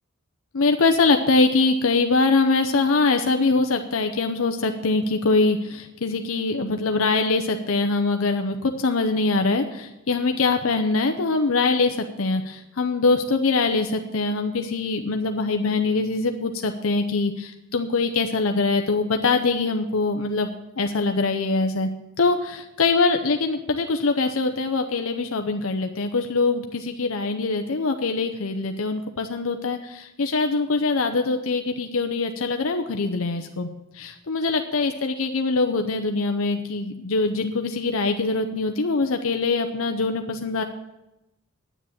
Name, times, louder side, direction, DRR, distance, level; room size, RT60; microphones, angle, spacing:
voice 1, 0.5-20.5 20.8-21.9 22.2-33.7 33.9-40.6, left 3 dB, 80° left, 6 dB, 0.7 m, -23 dB
9.9 x 8.1 x 7.1 m, 0.94 s
head